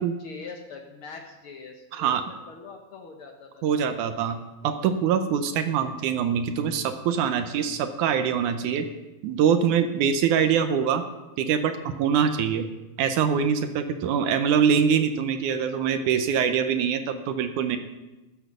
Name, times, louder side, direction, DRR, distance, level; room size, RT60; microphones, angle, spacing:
voice 1, 0.0-2.2 2.5-3.8, left 4 dB, 80° left, 2 dB, 1.1 m, -43 dB
voice 2, 3.6-4.4 4.6-8.9 9.2-11.0 11.4-12.7 13.0-17.8, right 7 dB, 75° right, 8 dB, 2.0 m, -24 dB
15.0 x 8.0 x 6.7 m, 1.1 s
omnidirectional pair, 4.1 m